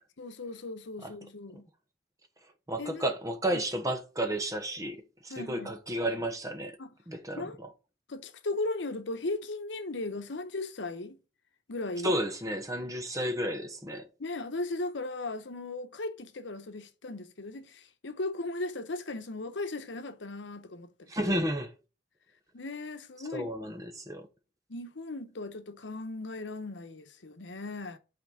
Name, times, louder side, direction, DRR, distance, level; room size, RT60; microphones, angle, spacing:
voice 1, 0.2-1.7 2.8-3.1 3.5-3.6 5.3-5.7 6.8-6.9 7.4-7.6 8.1-11.2 11.7-12.2 14.2-21.1 22.5-23.5 24.7-28.0, left 2 dB, 80° left, 0.9 m, -37 dB
voice 2, 2.7-6.8 7.1-7.7 12.0-14.1 21.1-21.7 23.3-24.3, right 1 dB, 20° right, 0.9 m, -32 dB
5.9 x 4.4 x 6.4 m
head